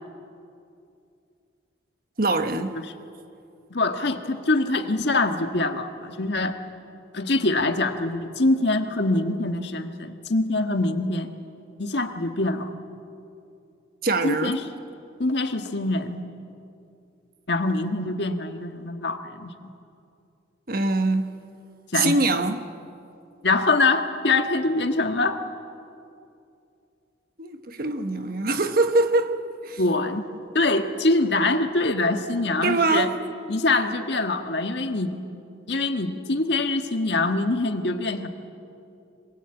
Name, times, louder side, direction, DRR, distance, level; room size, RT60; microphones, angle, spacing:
voice 1, 2.2-2.8 14.0-14.5 20.7-21.4 21.9-22.7 27.4-29.4 29.6-29.8 32.6-33.2, right 2 dB, 50° right, 1.3 m, -23 dB
voice 2, 3.7-6.6 7.1-11.3 11.8-12.7 14.2-14.6 15.2-16.2 17.5-19.7 21.9-22.2 23.4-25.4 29.8-30.3 30.5-33.1 33.5-35.2 35.7-38.3, left 2 dB, 60° left, 1.6 m, -24 dB
25.5 x 22.5 x 8.9 m
head